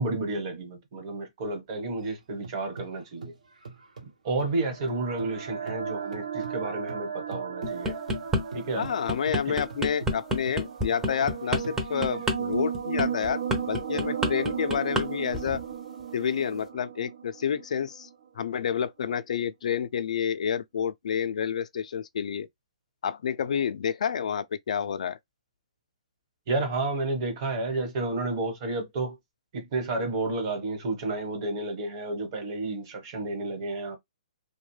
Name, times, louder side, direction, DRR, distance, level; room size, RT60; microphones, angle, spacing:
voice 1, 0.0-3.3 4.2-8.0 8.5-8.9 9.5-9.6 26.5-29.2 29.5-34.0, right 2 dB, 35° right, 1.2 m, -31 dB
sound 1, 2.0-5.4 5.7-12.3, right 4 dB, 75° right, 1.0 m, -44 dB
sound 2, 4.5-18.1, right 8 dB, 60° right, 0.6 m, -36 dB
sound 3, 7.6-8.4 8.8-15.1 15.3-15.6, equal, 10° right, 0.6 m, -28 dB
voice 2, 8.8-15.6 16.1-18.1 18.4-22.5 23.0-25.2, left 8 dB, 65° left, 0.4 m, -29 dB
2.6 x 2.2 x 3.1 m
hypercardioid pair, 150°, 4 cm